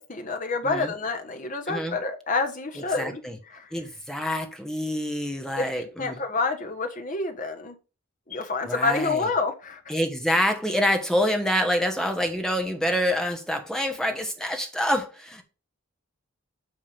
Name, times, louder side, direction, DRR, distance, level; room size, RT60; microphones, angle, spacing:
voice 1, 0.0-3.2 3.5-3.7 5.6-7.8 8.3-9.9, left 3 dB, 35° left, 1.3 m, -28 dB
voice 2, 3.0-3.4 3.7-6.2 8.7-9.3 9.9-15.4, equal, ahead, 1.1 m, -26 dB
8.9 x 3.6 x 6.8 m
head